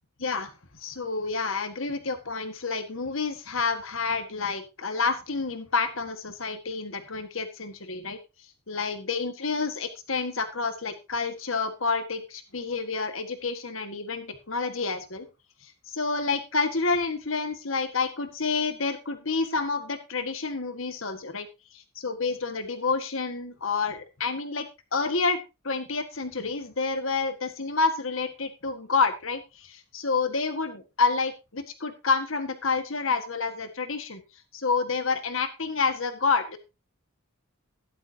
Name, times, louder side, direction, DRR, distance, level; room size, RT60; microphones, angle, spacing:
voice 1, 0.2-0.5 0.8-8.2 8.7-15.3 15.9-21.5 21.7-34.2 34.5-36.6, left 4 dB, 65° left, 9 dB, 1.7 m, -29 dB
12.5 x 11.5 x 2.8 m, 0.26 s
head